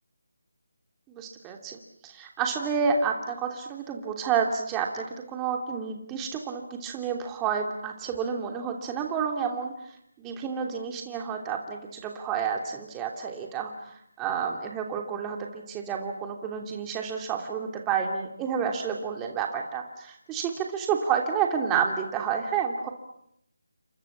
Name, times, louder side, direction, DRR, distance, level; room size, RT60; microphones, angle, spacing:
voice 1, 1.1-9.7 10.2-22.9, right 6 dB, 15° right, 2 dB, 2.9 m, -30 dB
29.5 x 25.5 x 7.4 m, 0.73 s
figure-of-eight pair, 160°, 0 cm